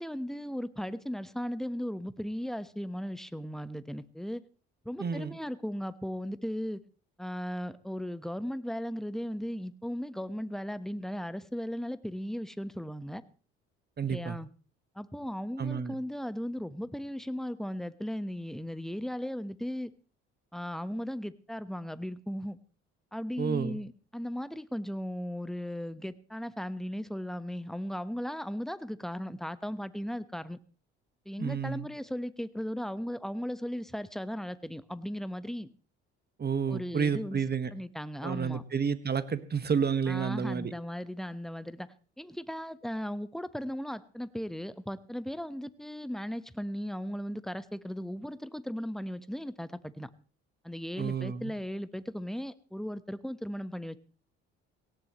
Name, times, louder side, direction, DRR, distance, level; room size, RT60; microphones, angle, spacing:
voice 1, 0.0-4.4 4.8-6.8 7.2-13.2 14.1-14.5 14.9-19.9 20.5-22.6 23.1-30.6 31.2-35.7 36.7-37.4 37.7-38.6 40.1-50.1 50.6-54.0, equal, ahead, 13 dB, 1.1 m, -37 dB
voice 2, 5.0-5.4 14.0-14.4 15.6-15.9 23.4-23.8 31.4-31.9 36.4-37.7 38.2-40.7 51.0-51.5, right 6 dB, 30° right, 12 dB, 1.5 m, -30 dB
18.0 x 17.5 x 3.1 m, 0.38 s
hypercardioid pair, 60°, 31 cm